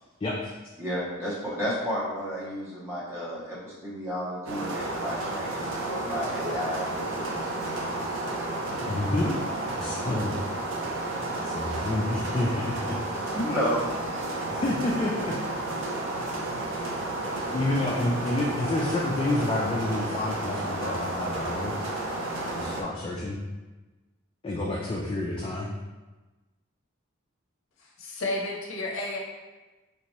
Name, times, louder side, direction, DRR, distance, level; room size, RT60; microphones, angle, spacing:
voice 1, 0.2-0.5 8.8-9.4 9.8-10.3 11.4-13.0 14.5-15.4 17.5-21.7 22.5-23.4 24.4-25.7, left 2 dB, 25° left, -4 dB, 0.3 m, -29 dB
voice 2, 0.8-7.5 9.9-10.4 11.7-11.8 13.3-13.9, equal, 15° right, -8 dB, 0.9 m, -32 dB
sound 1, 4.5-22.8, right 2 dB, 65° right, 0.6 m, -32 dB
voice 3, 27.8-29.2, left 2 dB, 65° left, -2 dB, 0.6 m, -32 dB
3.3 x 2.8 x 3.0 m, 1.2 s
head